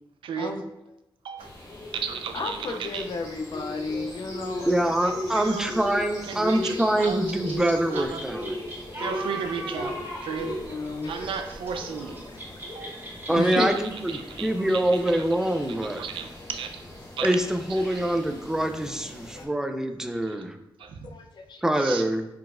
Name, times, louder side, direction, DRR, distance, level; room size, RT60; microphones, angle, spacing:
voice 1, 0.2-0.6 1.2-1.5 1.9-3.1 3.9-4.1 5.0-5.7 6.2-8.2 9.0-10.6 11.1-12.2 12.7-13.0 13.6-13.7 14.1-15.3 15.8-16.8 17.2-17.3 17.7-18.0 20.1-20.4 20.8-21.0 21.8-22.1, right 6 dB, 90° right, 6 dB, 0.5 m, -35 dB
sound 1, 1.4-19.4, left 1 dB, 35° left, 1.3 m, -38 dB
voice 2, 2.3-4.8 10.4-11.3 13.3-13.7 19.3-19.5 21.0-21.8, left 3 dB, 60° left, 6 dB, 0.4 m, -32 dB
voice 3, 4.7-8.6 13.3-16.0 17.2-20.6 21.6-22.3, right 1 dB, 5° right, 6 dB, 0.4 m, -25 dB
sound 2, 6.3-14.8, right 1 dB, 25° right, 1.1 m, -40 dB
4.5 x 4.0 x 2.4 m, 0.89 s
wide cardioid pair, 110°, 9 cm